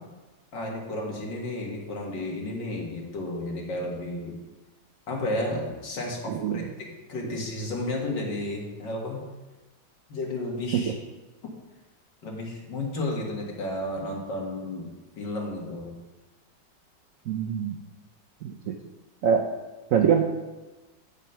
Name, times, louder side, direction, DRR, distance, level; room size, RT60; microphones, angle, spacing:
voice 1, 0.5-4.3 5.1-9.3 10.1-10.9 12.2-16.0, left 1 dB, 80° left, -1 dB, 2.4 m, -32 dB
voice 2, 6.3-6.6 10.7-10.9 17.3-17.8 18.4-18.8 19.2-19.5 19.9-20.4, right 7 dB, 70° right, 3 dB, 0.8 m, -24 dB
9.1 x 5.2 x 5.5 m, 1.2 s
omnidirectional pair, 1.9 m